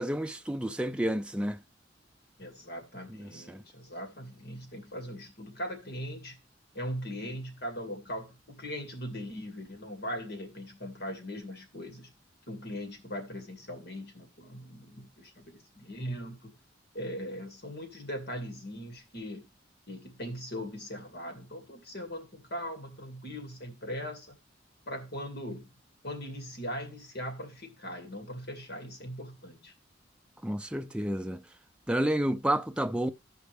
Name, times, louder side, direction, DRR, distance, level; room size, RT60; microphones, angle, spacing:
voice 1, 0.0-1.6 3.1-3.6 30.4-31.4 31.9-33.1, right 1 dB, 5° right, 0.4 m, -30 dB
voice 2, 2.4-6.4 6.7-12.1 12.5-16.5 16.9-19.4 19.9-24.4 24.9-25.7 26.0-29.7, equal, 60° left, 2.2 m, -40 dB
15.0 x 5.1 x 3.3 m
head